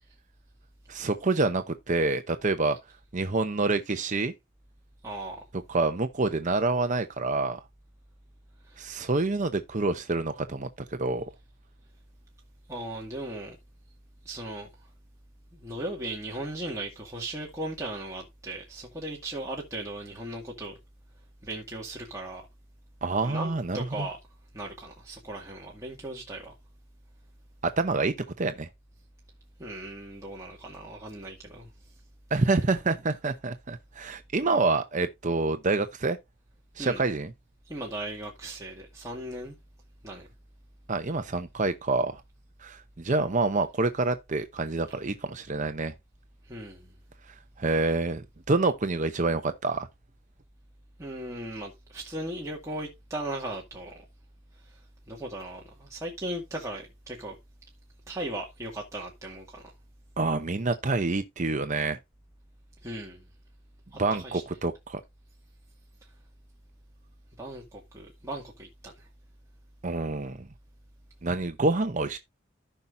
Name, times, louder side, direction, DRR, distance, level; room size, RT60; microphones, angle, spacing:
voice 1, 0.9-2.8 3.1-4.3 5.7-7.6 8.8-10.7 11.0-11.2 23.0-24.1 27.6-28.7 32.3-36.2 36.8-37.3 40.9-42.2 42.6-45.9 47.3-49.9 60.2-62.0 64.0-65.0 69.8-70.5 71.2-72.2, right 3 dB, 40° right, 0.7 m, -27 dB
voice 2, 5.0-5.5 8.6-8.9 12.7-13.6 14.2-14.9 15.5-20.8 21.4-22.4 23.2-24.2 24.5-26.5 29.6-32.0 36.8-37.0 37.6-39.6 40.0-40.3 46.4-47.0 51.0-54.0 54.5-57.4 58.1-59.7 62.8-63.3 63.9-64.4 66.0-66.1 67.4-69.1, right 1 dB, 15° right, 2.1 m, -38 dB
15.0 x 5.7 x 2.6 m
head